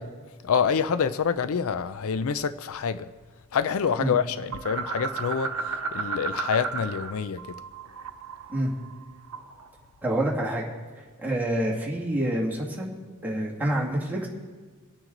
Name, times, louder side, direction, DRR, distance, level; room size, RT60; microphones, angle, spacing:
voice 1, 0.4-3.1 3.5-5.5 5.9-7.4, left 6 dB, 65° left, 0.4 m, -26 dB
sound 1, 4.5-7.1 7.4-9.7, right 4 dB, 85° right, 0.9 m, -33 dB
voice 2, 10.0-10.6 11.2-12.9 13.2-14.3, right 1 dB, 10° right, 2.2 m, -27 dB
24.5 x 9.0 x 3.9 m
head